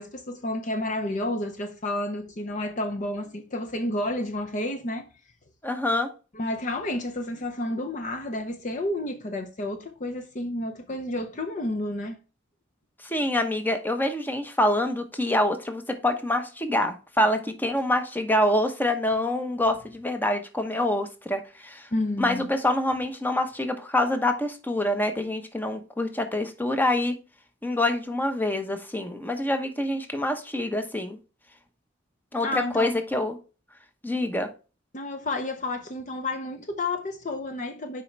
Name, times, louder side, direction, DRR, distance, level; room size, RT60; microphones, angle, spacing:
voice 1, 0.0-5.1 6.3-12.2 21.9-22.5 32.4-32.9 34.9-38.0, left 1 dB, 40° left, 0.7 m, -30 dB
voice 2, 5.6-6.1 13.0-21.9 22.2-27.2 27.6-31.2 32.3-33.4 34.0-34.5, left 1 dB, 10° left, 0.9 m, -26 dB
7.5 x 5.1 x 3.2 m
head